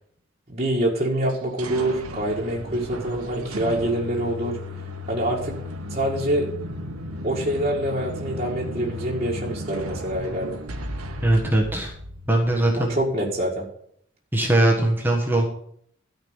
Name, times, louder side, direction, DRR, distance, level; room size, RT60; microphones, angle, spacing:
voice 1, 0.5-4.6 5.1-5.6 5.9-6.5 7.2-10.6 12.8-13.7, right 1 dB, 30° right, -5 dB, 1.9 m, -25 dB
sound 1, 1.3-12.9, left 1 dB, 90° right, 1.3 m, -35 dB
voice 2, 11.2-11.9 12.3-13.0 14.3-15.4, right 1 dB, 10° right, -1 dB, 1.4 m, -20 dB
13.5 x 5.2 x 8.0 m, 0.67 s
head